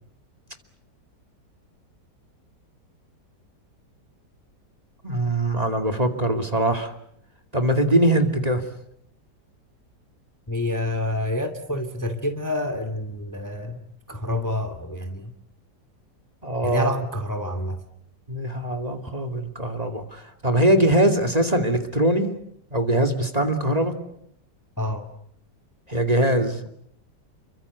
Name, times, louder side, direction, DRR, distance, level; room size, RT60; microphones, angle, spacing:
voice 1, 5.0-6.9 7.5-8.6 16.4-16.9 18.3-22.4 22.7-24.0 25.9-26.7, right 1 dB, 20° right, 9 dB, 2.6 m, -22 dB
voice 2, 10.5-13.8 14.1-15.3 16.6-17.8 24.8-25.0, left 1 dB, 10° left, 7 dB, 2.0 m, -28 dB
30.0 x 24.0 x 8.3 m, 0.70 s
omnidirectional pair, 1.8 m